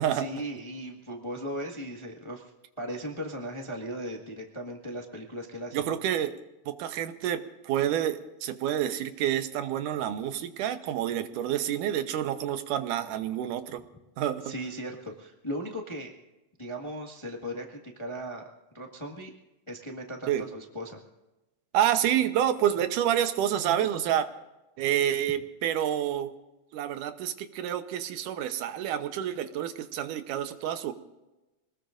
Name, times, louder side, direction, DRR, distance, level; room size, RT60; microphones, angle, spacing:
voice 1, 0.1-2.5 2.8-5.9 14.2-16.1 16.6-18.4 18.7-19.3 19.7-21.0, equal, 15° left, 1 dB, 1.0 m, -37 dB
voice 2, 5.7-6.3 6.7-13.8 14.2-14.5 20.3-20.5 21.7-24.3 24.8-26.3 26.7-30.9, right 10 dB, 90° right, 9 dB, 2.5 m, -28 dB
25.5 x 20.0 x 2.6 m, 1.0 s
omnidirectional pair, 3.6 m